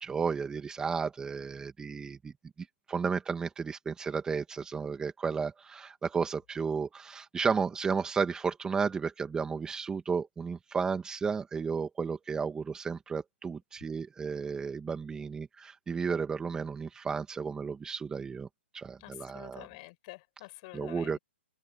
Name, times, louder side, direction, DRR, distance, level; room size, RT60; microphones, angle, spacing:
voice 1, 0.0-2.3 2.6-18.5 18.7-19.7 20.7-21.2, right 5 dB, 10° right, 2.0 m, -33 dB
voice 2, 19.0-21.2, left 24 dB, 40° left, 7.4 m, -48 dB
open air
hypercardioid pair, 135°, 7 cm